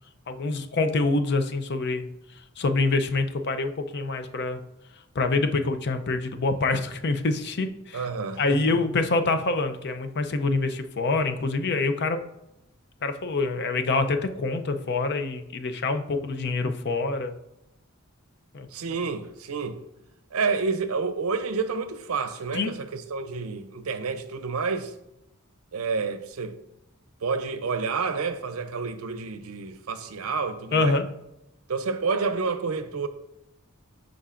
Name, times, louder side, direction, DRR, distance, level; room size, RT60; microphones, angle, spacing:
voice 1, 0.3-2.1 2.6-4.6 5.1-8.1 8.4-12.2 13.0-17.4 18.5-18.7 22.5-22.7 30.7-31.0, left 3 dB, 50° left, 0.5 m, -26 dB
voice 2, 7.9-8.6 18.7-19.8 20.3-24.9 25.7-26.6 27.2-31.0 31.7-33.1, right 4 dB, 80° right, 0.6 m, -29 dB
11.0 x 3.9 x 2.5 m
head